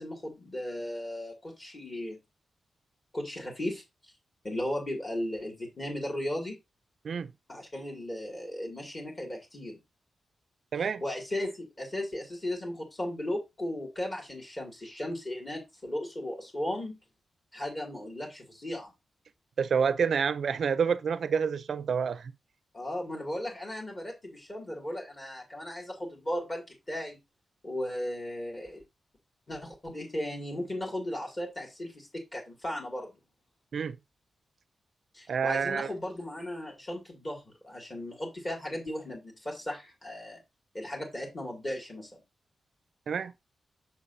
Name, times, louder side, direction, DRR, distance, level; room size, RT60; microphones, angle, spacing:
voice 1, 0.0-2.2 3.1-3.8 4.4-6.6 7.5-9.8 10.7-17.0 17.5-18.9 22.7-27.2 27.6-28.8 29.5-33.1 35.1-40.4 40.7-42.2, left 1 dB, 25° left, 2.4 m, -36 dB
voice 2, 10.7-11.0 19.6-22.3 33.7-34.0 35.3-35.9 43.1-43.3, right 6 dB, 65° right, 0.4 m, -28 dB
7.0 x 5.9 x 2.7 m
wide cardioid pair, 150°, 0 cm